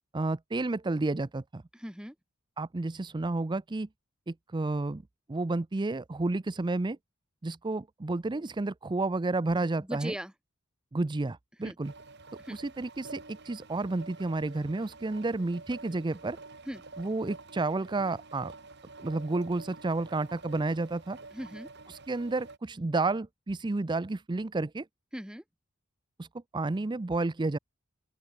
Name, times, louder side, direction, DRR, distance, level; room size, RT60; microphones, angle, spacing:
voice 1, 0.1-1.6 2.6-3.9 4.3-5.0 5.3-7.0 7.4-10.1 10.9-11.9 12.5-16.4 17.0-18.5 19.0-21.2 21.9-24.9 26.2-26.3 26.5-27.6, right 2 dB, 20° right, 0.5 m, -31 dB
voice 2, 1.7-2.2 9.6-10.3 11.6-11.8 12.4-12.6 16.7-16.8 21.3-21.7 25.1-25.4, equal, 5° right, 2.0 m, -39 dB
sound 1, 11.8-22.6, right 3 dB, 55° right, 5.0 m, -49 dB
open air
head